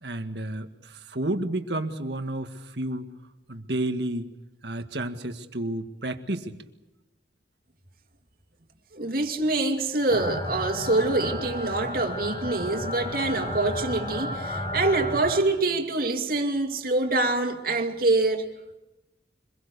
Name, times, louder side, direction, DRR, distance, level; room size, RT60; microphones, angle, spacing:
voice 1, 0.0-3.1 3.5-4.3 4.6-6.6, right 1 dB, 70° right, 1.8 m, -31 dB
voice 2, 8.9-18.5, right 2 dB, 55° right, 2.6 m, -25 dB
sound 1, 10.1-15.4, left 1 dB, 30° left, 5.9 m, -33 dB
25.5 x 21.5 x 6.8 m
head